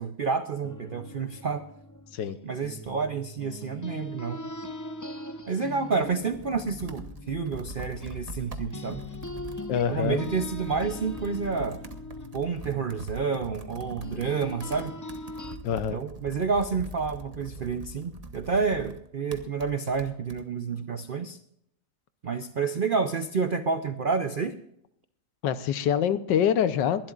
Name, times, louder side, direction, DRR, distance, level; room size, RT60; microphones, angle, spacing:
voice 1, 0.0-1.6 2.4-4.4 5.5-9.0 9.9-11.8 12.3-14.9 15.9-21.4 22.2-24.6, right 5 dB, 90° right, 9 dB, 0.4 m, -29 dB
sound 1, 0.6-8.4 8.7-15.6, left 1 dB, 30° left, 0.3 m, -41 dB
Computer keyboard, 5.8-20.4, right 1 dB, 25° right, 0.9 m, -43 dB
voice 2, 9.7-10.2 15.6-16.0 25.4-27.1, left 8 dB, 75° left, 13 dB, 1.5 m, -25 dB
22.5 x 12.0 x 2.5 m, 0.72 s
omnidirectional pair, 2.0 m